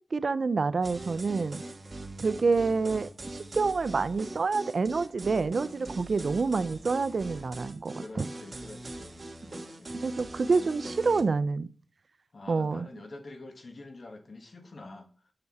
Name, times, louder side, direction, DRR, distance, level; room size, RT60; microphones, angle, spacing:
voice 1, 0.1-1.6 2.2-8.3 10.0-11.7 12.5-12.9, right 4 dB, 70° right, 0.5 m, -27 dB
sound 1, 0.8-11.2, right 2 dB, 45° right, 1.3 m, -41 dB
voice 2, 7.9-9.9 10.5-10.7 12.3-15.1, left 2 dB, 65° left, 1.4 m, -47 dB
6.8 x 6.7 x 4.1 m
wide cardioid pair, 70°, 0 cm